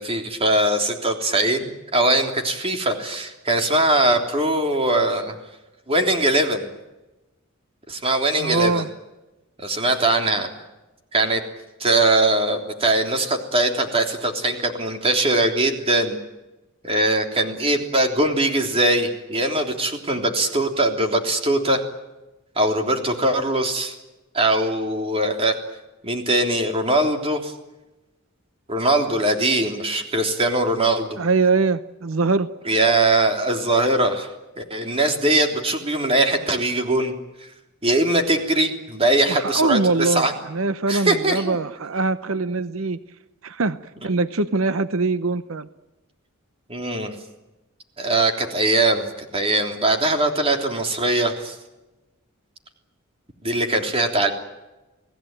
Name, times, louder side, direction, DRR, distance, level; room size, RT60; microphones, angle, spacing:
voice 1, 0.0-5.4 5.9-6.7 7.9-8.8 9.6-10.5 11.1-11.4 11.8-16.2 16.8-21.8 22.6-23.9 24.3-25.6 26.0-27.5 28.7-31.2 32.7-34.3 34.6-37.2 37.8-40.3 40.9-41.6 44.0-44.1 46.7-47.2 48.0-49.1 49.3-51.6 53.4-54.3, right 2 dB, 30° right, 4 dB, 3.4 m, -21 dB
voice 2, 8.4-8.9 31.2-32.5 39.3-43.0 43.4-43.8 44.0-45.7, right 3 dB, 80° right, 13 dB, 0.8 m, -22 dB
29.5 x 18.0 x 9.1 m, 1.0 s
head